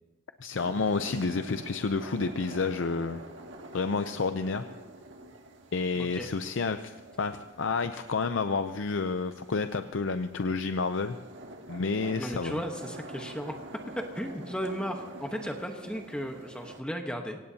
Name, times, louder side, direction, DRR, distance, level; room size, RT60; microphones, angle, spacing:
voice 1, 0.4-3.2 3.7-4.6 5.7-11.2 11.7-12.6, left 4 dB, 85° left, 9 dB, 0.6 m, -30 dB
sound 1, 0.6-16.8, right 1 dB, 75° right, 1.6 m, -47 dB
voice 2, 6.0-6.3 12.2-13.5 14.1-17.4, equal, 5° left, 3 dB, 1.1 m, -35 dB
24.0 x 18.0 x 2.8 m, 1.3 s
head